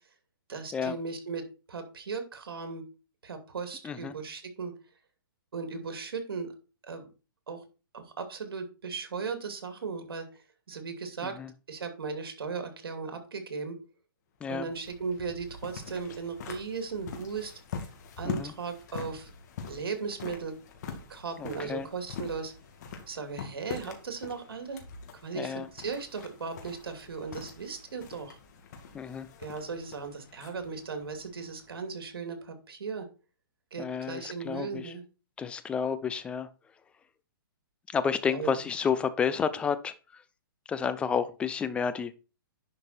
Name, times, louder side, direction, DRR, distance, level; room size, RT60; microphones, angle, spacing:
voice 1, 0.5-2.9 3.2-4.7 5.5-6.5 6.9-7.1 7.5-7.6 7.9-10.3 10.7-11.3 11.7-13.8 14.5-17.5 18.2-19.3 19.7-20.5 21.1-22.5 23.1-24.8 25.1-28.4 29.4-33.1 33.7-35.0 38.3-38.5, right 5 dB, 85° right, 7 dB, 2.7 m, -37 dB
sound 1, 14.4-32.1, left 6 dB, 50° left, 2.3 m, -44 dB
voice 2, 21.4-21.9 25.3-25.7 28.9-29.3 33.8-34.9 35.4-36.5 37.9-39.9 40.7-42.1, left 6 dB, 10° left, 14 dB, 0.5 m, -30 dB
10.5 x 5.3 x 4.3 m, 0.33 s
hypercardioid pair, 155°, 12 cm